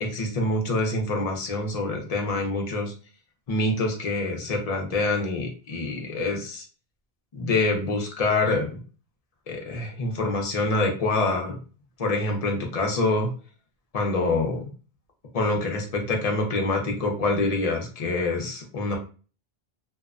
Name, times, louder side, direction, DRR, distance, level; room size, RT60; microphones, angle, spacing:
voice 1, 0.0-2.9 3.5-6.6 7.3-8.8 9.5-11.6 12.0-13.3 13.9-14.7 15.3-19.0, left 2 dB, 45° left, 1 dB, 0.6 m, -26 dB
2.7 x 2.1 x 2.4 m, 0.37 s
omnidirectional pair, 1.1 m